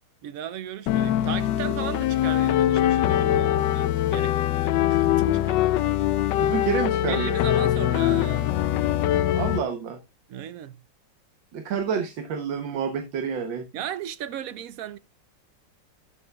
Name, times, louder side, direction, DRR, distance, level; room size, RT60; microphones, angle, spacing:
voice 1, 0.2-5.7 7.1-8.6 10.3-10.8 13.7-15.0, right 10 dB, 75° right, 0.8 m, -36 dB
sound 1, 0.9-9.6, left 12 dB, 80° left, 1.3 m, -23 dB
voice 2, 6.3-7.3 9.3-10.0 11.5-13.7, right 7 dB, 90° right, 1.7 m, -29 dB
12.0 x 6.9 x 2.3 m
omnidirectional pair, 2.0 m